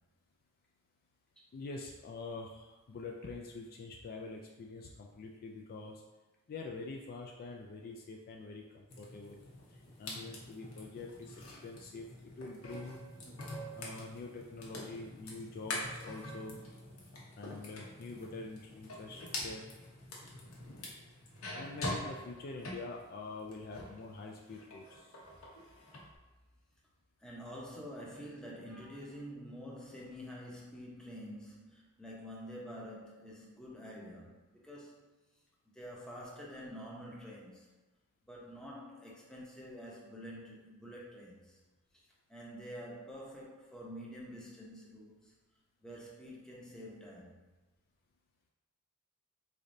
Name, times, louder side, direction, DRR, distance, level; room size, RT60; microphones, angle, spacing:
voice 1, 1.5-6.0 6.5-9.4 9.7-11.3 11.6-13.0 13.7-16.6 17.4-19.7 21.5-25.1, left 3 dB, 45° left, 0 dB, 0.3 m, -45 dB
sound 1, 8.9-24.0 24.4-26.1, left 1 dB, 70° left, 0.8 m, -45 dB
voice 2, 27.2-35.1 35.7-37.7 38.3-41.6 41.9-42.0 42.3-45.3 45.8-47.4, equal, 5° left, -4 dB, 0.7 m, -48 dB
3.8 x 3.2 x 2.6 m, 1.2 s
head